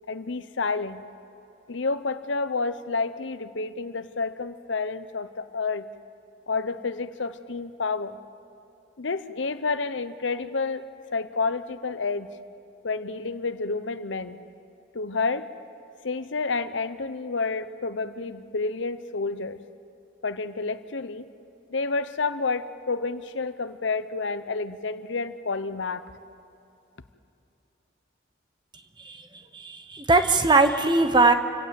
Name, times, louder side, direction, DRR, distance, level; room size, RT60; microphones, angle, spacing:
voice 1, 0.1-1.0 1.7-5.9 6.5-8.2 9.0-10.8 11.1-12.3 12.8-14.4 14.9-15.5 16.0-19.6 20.2-21.2 21.7-26.1, left 4 dB, 75° left, 12 dB, 0.9 m, -29 dB
voice 2, 29.0-31.3, right 3 dB, 25° right, 8 dB, 1.1 m, -21 dB
27.5 x 17.0 x 7.7 m, 2.7 s
head